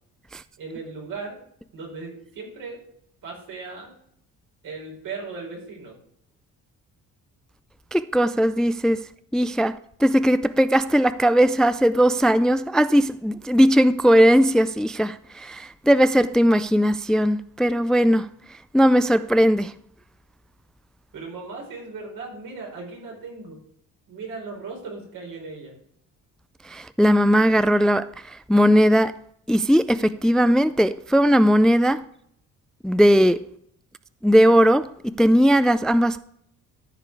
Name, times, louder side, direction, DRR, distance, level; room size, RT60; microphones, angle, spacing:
voice 1, 0.6-1.4 1.7-2.8 3.2-4.0 4.6-6.0 21.1-23.6 24.1-25.8, right 4 dB, 75° right, 4.6 m, -37 dB
voice 2, 7.9-9.0 9.3-18.3 18.7-19.7 26.7-29.1 29.5-32.0 32.8-33.4 34.2-34.9 35.2-36.2, equal, ahead, 0.3 m, -18 dB
14.0 x 4.8 x 4.7 m
cardioid pair, 80°, 33 cm